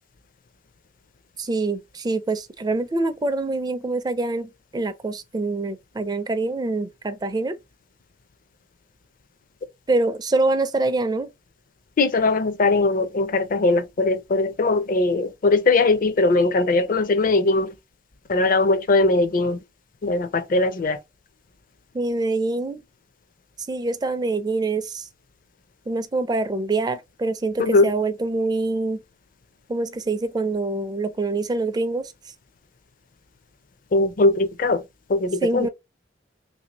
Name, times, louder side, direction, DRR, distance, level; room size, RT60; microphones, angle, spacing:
voice 1, 1.4-7.5 9.9-11.3 21.9-22.8 23.7-25.1 25.9-29.0 29.7-32.1 35.4-35.7, right 2 dB, 20° right, 0.4 m, -25 dB
voice 2, 12.0-17.7 18.3-19.6 20.0-21.0 27.6-27.9 33.9-34.8 35.1-35.7, left 3 dB, 45° left, 0.5 m, -20 dB
3.1 x 2.7 x 2.9 m
head